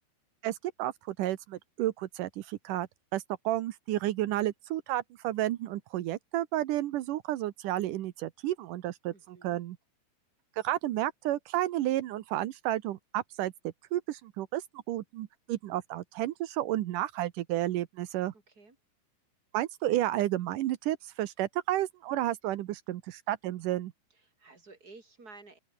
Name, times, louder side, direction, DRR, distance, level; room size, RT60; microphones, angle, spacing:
voice 1, 0.4-9.8 10.6-18.3 19.5-23.9, right 14 dB, 85° right, 1.8 m, -32 dB
voice 2, 9.1-9.6 18.5-18.8 24.1-25.6, right 3 dB, 20° right, 4.9 m, -53 dB
open air
omnidirectional pair, 5.2 m